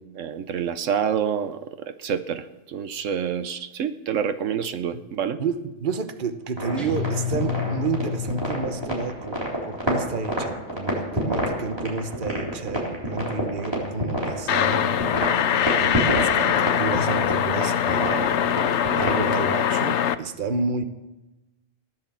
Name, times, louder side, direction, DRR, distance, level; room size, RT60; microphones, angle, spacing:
voice 1, 0.0-1.6 2.0-5.4, right 8 dB, 80° right, 11 dB, 1.2 m, -27 dB
voice 2, 5.4-15.0 15.8-18.4 18.9-20.8, right 4 dB, 45° right, 9 dB, 1.1 m, -30 dB
sound 1, 6.6-19.4, equal, 20° right, 3.8 m, -28 dB
Guitar, 6.8-9.4, left 7 dB, ahead, 2.3 m, -30 dB
sound 2, 14.5-20.1, left 9 dB, 70° left, 0.9 m, -22 dB
16.5 x 10.5 x 7.3 m, 1.0 s
omnidirectional pair, 1.3 m